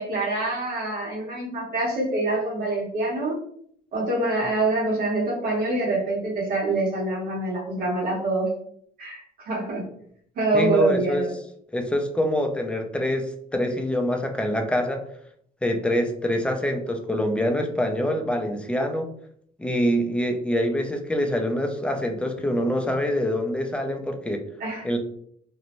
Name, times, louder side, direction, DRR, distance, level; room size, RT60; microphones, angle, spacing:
voice 1, 0.0-3.4 3.9-8.5 9.0-9.8 10.3-11.3 24.6-24.8, right 2 dB, 60° right, -4 dB, 1.2 m, -25 dB
voice 2, 10.5-11.2 11.7-15.0 15.6-19.1 19.6-24.4 24.8-25.0, equal, 5° left, 4 dB, 0.4 m, -25 dB
2.6 x 2.0 x 3.0 m, 0.66 s
cardioid pair, 110°, 17 cm